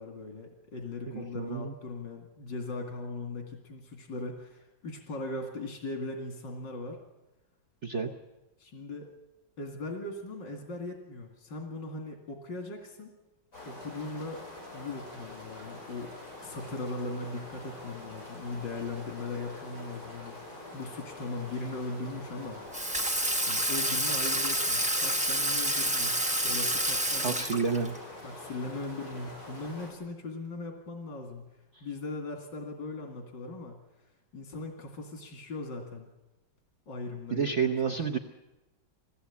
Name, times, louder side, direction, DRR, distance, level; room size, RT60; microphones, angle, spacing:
voice 1, 0.0-7.0 8.6-9.1 9.6-13.1 13.7-14.4 14.7-16.1 16.4-22.6 23.5-27.8 28.2-31.4 31.8-33.8 34.3-36.1 36.9-38.0, left 2 dB, 85° left, 2 dB, 2.8 m, -39 dB
voice 2, 1.1-1.7 7.8-8.1 27.2-27.9 31.7-31.9 37.3-38.2, right 6 dB, 50° right, 3 dB, 1.1 m, -30 dB
sound 1, 13.5-29.9, left 2 dB, 55° left, 7.7 m, -45 dB
Water tap faucet / Sink (filling or washing), 22.7-28.0, right 1 dB, 10° right, 0.5 m, -28 dB
20.5 x 16.0 x 8.4 m, 1.1 s
omnidirectional pair, 1.9 m